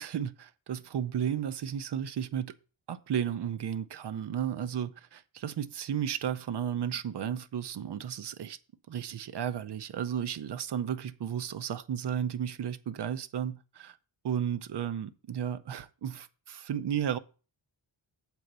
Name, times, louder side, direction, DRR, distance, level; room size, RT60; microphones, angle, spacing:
voice 1, 0.0-2.5 2.9-8.6 8.9-14.0 14.2-17.2, right 9 dB, 60° right, 0.8 m, -33 dB
7.7 x 4.6 x 6.7 m
wide cardioid pair, 125°, 47 cm